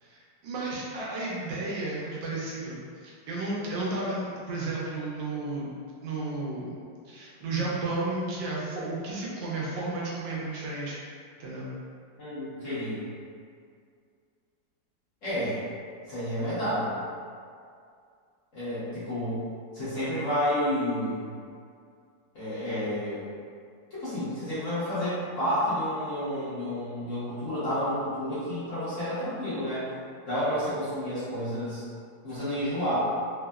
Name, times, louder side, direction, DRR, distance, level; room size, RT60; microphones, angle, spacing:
voice 1, 0.0-5.7 6.0-6.8 7.1-11.0 11.4-11.7, right 2 dB, 85° right, -5 dB, 1.4 m, -33 dB
voice 2, 12.2-13.1 15.2-15.6 16.1-16.9 18.5-19.4 19.7-21.3 22.3-23.2 23.9-29.9 30.3-31.8 32.2-33.0, equal, 55° left, -13 dB, 1.0 m, -30 dB
3.4 x 2.0 x 2.3 m, 2.3 s
omnidirectional pair, 2.0 m